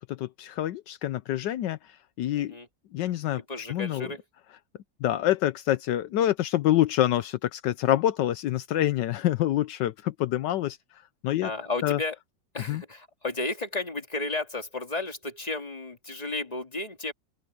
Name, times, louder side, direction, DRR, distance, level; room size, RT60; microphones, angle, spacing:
voice 1, 0.1-2.6 2.9-4.1 5.0-10.8 11.2-11.5 11.8-12.0 12.7-12.8, left 13 dB, 80° left, 1.3 m, -26 dB
voice 2, 2.4-2.7 3.5-4.2 11.4-12.2 12.5-17.1, left 2 dB, 20° left, 2.4 m, -33 dB
open air
omnidirectional pair, 1.9 m